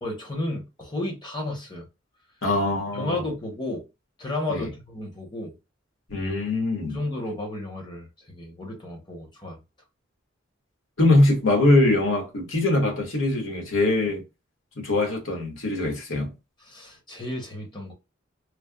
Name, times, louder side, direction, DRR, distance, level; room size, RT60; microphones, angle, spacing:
voice 1, 0.0-1.9 2.9-3.8 4.2-5.5 6.9-9.6 16.7-17.9, left 2 dB, 25° left, 1.0 m, -32 dB
voice 2, 2.4-3.2 4.5-4.7 6.1-7.0 11.0-14.2 14.8-16.3, left 2 dB, 85° left, 1.2 m, -22 dB
3.2 x 2.0 x 2.3 m
head